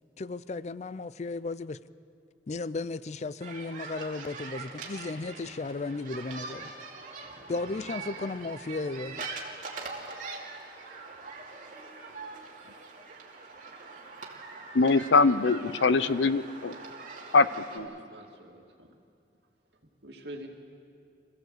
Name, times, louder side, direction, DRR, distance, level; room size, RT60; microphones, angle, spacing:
voice 1, 0.2-1.8 2.5-6.7 7.5-9.3, left 3 dB, 40° left, 0.4 m, -35 dB
sound 1, 3.4-17.8, right 4 dB, 45° right, 2.6 m, -43 dB
voice 2, 14.7-16.8 17.3-17.9, left 4 dB, 90° left, 0.7 m, -23 dB
voice 3, 17.7-18.9 19.8-20.5, right 1 dB, 65° right, 2.6 m, -46 dB
26.5 x 15.5 x 7.9 m
head